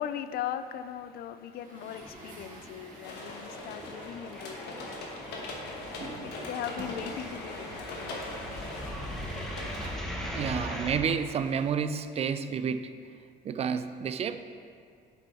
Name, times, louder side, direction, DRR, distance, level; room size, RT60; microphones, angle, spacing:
voice 1, 0.0-8.2, left 10 dB, 65° left, 0.4 m, -39 dB
Truck, 1.5-11.7, right 2 dB, 55° right, 1.3 m, -49 dB
sound 1, 2.0-2.7 2.9-11.0, equal, ahead, 1.0 m, -40 dB
sound 2, 3.0-9.8, left 2 dB, 85° left, 1.2 m, -41 dB
voice 2, 10.3-12.9 13.4-14.4, right 7 dB, 40° right, 0.4 m, -30 dB
7.3 x 5.4 x 4.4 m
cardioid pair, 110°, 17 cm